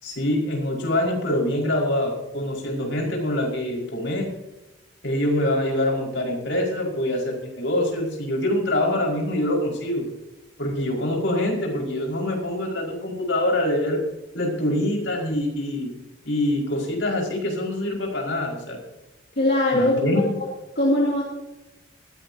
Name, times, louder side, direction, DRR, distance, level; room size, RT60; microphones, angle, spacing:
voice 1, 0.0-4.3 5.0-10.1 10.6-14.0 14.3-15.9 16.2-18.8 19.7-20.4, left 1 dB, 70° left, -1 dB, 5.1 m, -25 dB
voice 2, 19.4-20.0 20.8-21.2, left 1 dB, 55° left, -4 dB, 2.7 m, -20 dB
19.5 x 15.5 x 2.8 m, 1.0 s
head